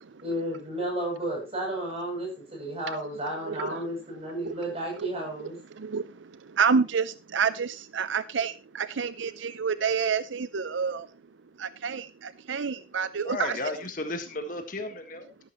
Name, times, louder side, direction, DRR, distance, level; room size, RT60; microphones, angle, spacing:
voice 1, 0.2-5.6, right 1 dB, 30° right, -1 dB, 7.6 m, -32 dB
voice 2, 3.2-3.9 4.4-4.5 5.0-5.1 5.7-13.6, right 6 dB, 80° right, 15 dB, 0.6 m, -29 dB
voice 3, 13.2-15.3, left 2 dB, 45° left, 7 dB, 1.6 m, -33 dB
13.5 x 11.5 x 3.0 m, 0.29 s
head